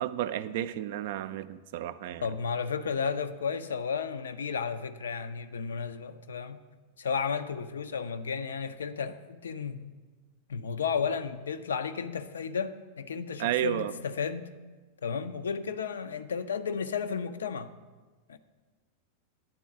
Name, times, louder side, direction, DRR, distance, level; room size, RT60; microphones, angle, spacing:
voice 1, 0.0-2.3 13.4-13.9, right 12 dB, 55° right, 14 dB, 0.3 m, -32 dB
voice 2, 2.2-6.6 7.0-10.0 10.5-14.5 15.0-17.7 18.3-18.4, left 6 dB, 65° left, 11 dB, 0.4 m, -33 dB
9.4 x 3.8 x 7.1 m, 1.3 s
figure-of-eight pair, 90°, 0 cm